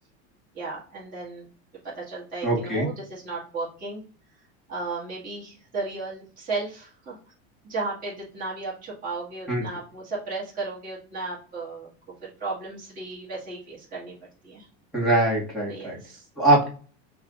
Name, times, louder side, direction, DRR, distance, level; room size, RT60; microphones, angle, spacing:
voice 1, 0.5-1.5 1.8-4.0 4.7-7.2 7.6-11.9 12.2-14.1 14.4-14.7 15.7-16.3, right 3 dB, 25° right, -7 dB, 1.8 m, -34 dB
voice 2, 2.4-2.9 9.5-9.6 14.9-16.0 16.4-16.7, right 1 dB, ahead, -4 dB, 2.0 m, -22 dB
6.0 x 2.4 x 2.6 m, 0.40 s
supercardioid pair, 135°, 35 cm